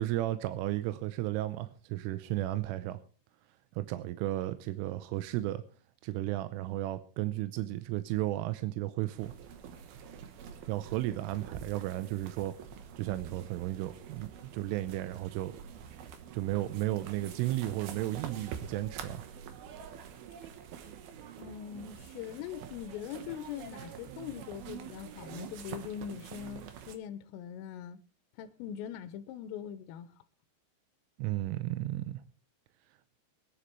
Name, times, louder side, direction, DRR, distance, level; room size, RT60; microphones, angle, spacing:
voice 1, 0.0-3.0 3.8-5.6 6.0-9.3 10.7-12.5 13.0-15.5 16.3-19.3 31.2-32.2, right 15 dB, 85° right, 3.3 m, -34 dB
sound 1, 9.2-27.0, right 8 dB, 70° right, 2.5 m, -46 dB
voice 2, 21.4-28.0 28.4-30.1, left 10 dB, 90° left, 3.5 m, -42 dB
24.5 x 10.0 x 3.2 m
omnidirectional pair, 5.7 m